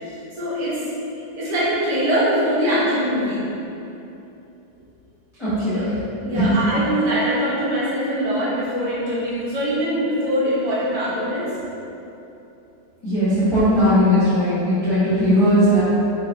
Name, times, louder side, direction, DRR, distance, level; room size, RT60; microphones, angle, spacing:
voice 1, 0.4-0.8 1.4-3.4 5.7-5.9 6.2-11.5, equal, 55° right, -9 dB, 1.5 m, -22 dB
voice 2, 5.4-5.9 6.3-6.5 13.0-15.8, equal, 20° left, -14 dB, 0.9 m, -18 dB
3.9 x 3.9 x 2.7 m, 2.8 s
omnidirectional pair, 2.1 m